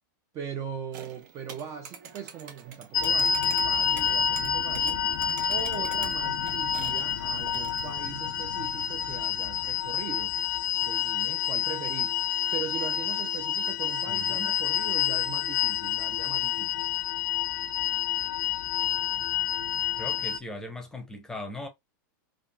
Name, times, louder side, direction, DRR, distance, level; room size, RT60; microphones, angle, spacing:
voice 1, 0.3-5.0 5.5-10.4 10.8-12.2 12.5-16.9, right 8 dB, 30° right, 0.4 m, -40 dB
sound 1, 0.9-7.9, right 7 dB, 65° right, 0.8 m, -47 dB
sound 2, 2.9-20.4, left 8 dB, 70° left, 0.4 m, -28 dB
voice 2, 14.1-14.5 19.9-21.7, left 1 dB, 5° left, 0.7 m, -39 dB
3.4 x 2.4 x 2.2 m
supercardioid pair, 145°, 11 cm